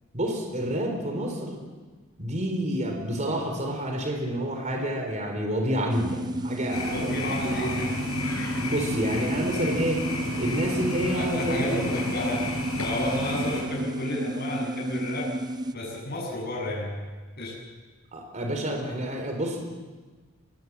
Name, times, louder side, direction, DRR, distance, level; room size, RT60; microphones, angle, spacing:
voice 1, 0.1-1.6 2.2-7.8 8.6-10.1 10.4-11.8 13.4-13.5 18.1-19.6, right 1 dB, 35° right, 2 dB, 4.1 m, -29 dB
sound 1, 5.9-15.7, right 1 dB, 20° right, 0.6 m, -32 dB
sound 2, 6.7-13.6, left 2 dB, 90° left, 5.8 m, -32 dB
voice 2, 6.9-8.2 11.1-15.3 15.7-17.0 17.4-17.6, left 1 dB, 45° left, -3 dB, 7.6 m, -32 dB
24.0 x 21.0 x 7.5 m, 1.4 s
head